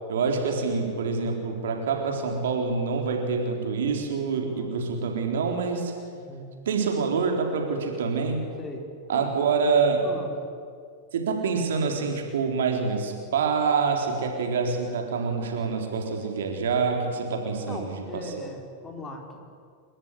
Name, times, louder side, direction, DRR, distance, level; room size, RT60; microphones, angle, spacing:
voice 1, 0.1-5.9 6.7-8.4 9.1-10.1 11.1-18.3, right 5 dB, 60° right, 3 dB, 4.1 m, -26 dB
voice 2, 4.4-4.9 6.1-6.5 8.6-9.3 10.0-10.3 17.7-19.5, left 1 dB, 20° left, 3 dB, 4.6 m, -39 dB
29.5 x 14.5 x 10.0 m, 2.2 s
figure-of-eight pair, 90°, 0 cm